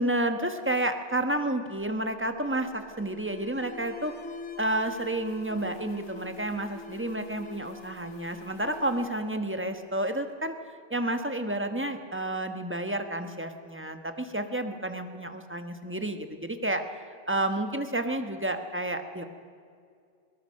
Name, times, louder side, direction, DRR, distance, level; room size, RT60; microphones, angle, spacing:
voice 1, 0.0-4.2 4.6-10.6 10.9-16.8 17.3-19.2, right 1 dB, 10° right, 7 dB, 0.5 m, -30 dB
Alarm, 1.6-10.2, left 3 dB, 50° left, 0.9 m, -46 dB
22.0 x 19.0 x 6.5 m, 2.3 s
omnidirectional pair, 2.3 m